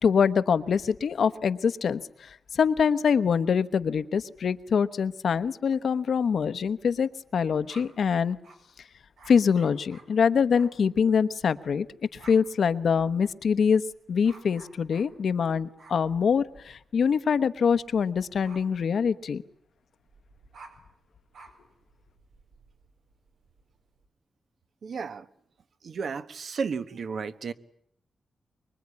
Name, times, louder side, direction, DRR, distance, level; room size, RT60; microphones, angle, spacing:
voice 1, 0.0-8.4 9.3-11.9 12.2-13.8 14.1-19.4, left 6 dB, 65° left, 13 dB, 1.0 m, -24 dB
sound 1, 6.3-8.7 9.2-10.8 11.1-11.4 11.7-24.1, right 3 dB, 85° right, 4.8 m, -55 dB
voice 2, 24.8-25.2 25.8-27.5, right 5 dB, 60° right, 11 dB, 1.2 m, -33 dB
24.5 x 22.5 x 9.8 m, 0.68 s
wide cardioid pair, 125°, 0 cm